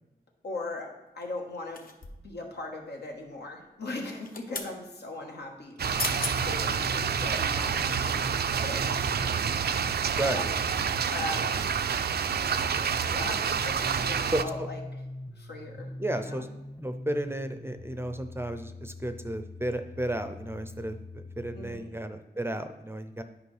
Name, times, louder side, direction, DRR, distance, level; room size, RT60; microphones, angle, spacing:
voice 1, 0.4-1.9 2.1-8.3 8.6-9.3 10.2-10.6 11.1-11.7 13.1-15.0 15.3-16.5 21.5-21.9, left 2 dB, 80° left, 1 dB, 1.3 m, -39 dB
sound 1, 1.7-2.3 4.0-4.7 5.7-5.8 6.0-6.4 6.9-7.0, left 3 dB, 60° left, 0.8 m, -35 dB
sound 2, 5.8-21.8, left 2 dB, 15° left, 0.7 m, -43 dB
sound 3, 5.8-14.4, right 7 dB, 70° right, 0.4 m, -28 dB
voice 2, 14.3-14.7 16.0-16.5 16.8-23.2, right 1 dB, 15° right, 8 dB, 0.5 m, -33 dB
9.3 x 5.1 x 3.3 m, 0.95 s
wide cardioid pair, 80°, 17 cm